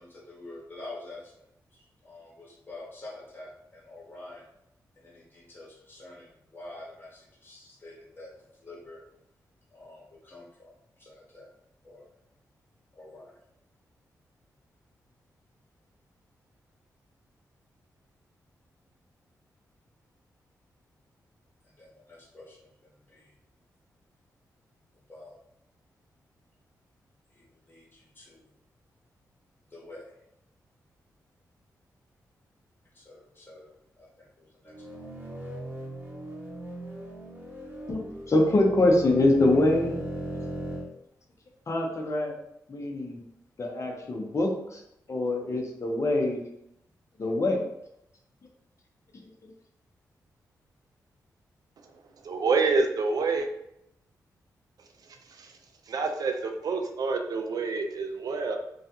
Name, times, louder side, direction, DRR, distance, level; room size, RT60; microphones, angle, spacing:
voice 1, 0.0-1.5 1.7-4.5 5.0-8.3 8.6-9.0 9.7-11.5 11.8-12.1 13.0-13.3 21.6-22.7 23.1-23.3 25.1-25.4 27.3-28.5 29.7-30.1 32.9-35.1, left 2 dB, 30° left, -4 dB, 1.1 m, -47 dB
sound 1, 34.7-40.9, right 1 dB, 30° right, 0.9 m, -38 dB
voice 2, 37.9-40.0 41.7-42.3 42.7-43.2 43.6-44.8 45.1-46.5 47.2-47.7 49.2-49.3, left 2 dB, 45° left, 0 dB, 0.7 m, -24 dB
voice 3, 52.2-53.5 55.3-55.5 55.9-58.6, right 4 dB, 65° right, 4 dB, 0.4 m, -27 dB
2.4 x 2.2 x 2.7 m, 0.79 s
cardioid pair, 55°, 7 cm